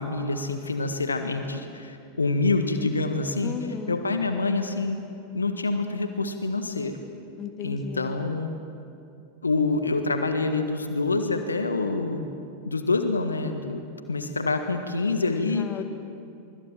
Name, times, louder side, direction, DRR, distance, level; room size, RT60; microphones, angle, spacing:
voice 1, 0.0-3.5 3.9-5.0 5.3-7.0 7.6-8.5 9.4-12.3 12.6-13.8 14.1-15.7, left 3 dB, 75° left, 7 dB, 1.6 m, -26 dB
voice 2, 3.4-4.0 7.4-8.2 15.5-15.8, left 7 dB, 30° left, 7 dB, 2.0 m, -34 dB
25.0 x 24.5 x 7.4 m, 2.7 s
figure-of-eight pair, 90°, 0 cm